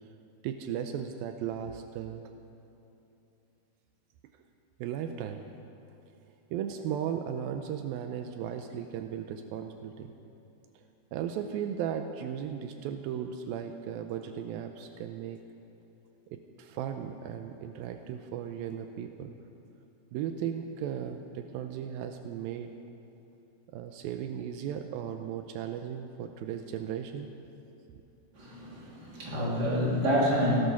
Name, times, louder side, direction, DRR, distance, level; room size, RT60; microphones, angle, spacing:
voice 1, 0.4-2.2 4.8-5.4 6.5-10.1 11.1-15.4 16.3-19.3 20.1-22.7 23.7-27.3, right 9 dB, 90° right, 7 dB, 2.1 m, -36 dB
voice 2, 28.3-30.6, equal, 25° right, -5 dB, 3.0 m, -28 dB
18.0 x 11.5 x 6.1 m, 2.9 s
omnidirectional pair, 4.8 m